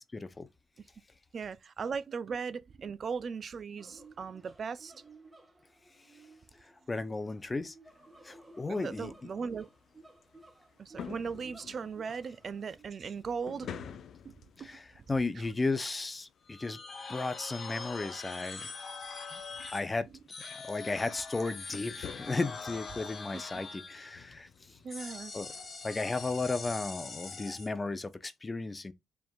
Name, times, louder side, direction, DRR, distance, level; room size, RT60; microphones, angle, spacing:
voice 1, 1.3-4.9 8.7-9.7 10.8-13.8 14.2-14.3 14.6-14.7 24.8-25.3, right 5 dB, 45° right, 0.4 m, -38 dB
sound 1, 3.8-12.8, right 2 dB, 15° right, 1.3 m, -57 dB
voice 2, 6.9-7.7 8.2-9.1 14.6-16.8 17.1-18.7 19.3-19.4 19.7-20.1 20.6-24.5 25.3-25.5 25.8-28.9, left 3 dB, 25° left, 0.6 m, -34 dB
sound 2, 7.9-27.2, left 8 dB, 65° left, 0.6 m, -52 dB
sound 3, 16.5-19.9 20.3-24.3 24.9-27.7, left 4 dB, 40° left, 1.3 m, -43 dB
5.0 x 3.5 x 2.3 m
cardioid pair, 90°, 0 cm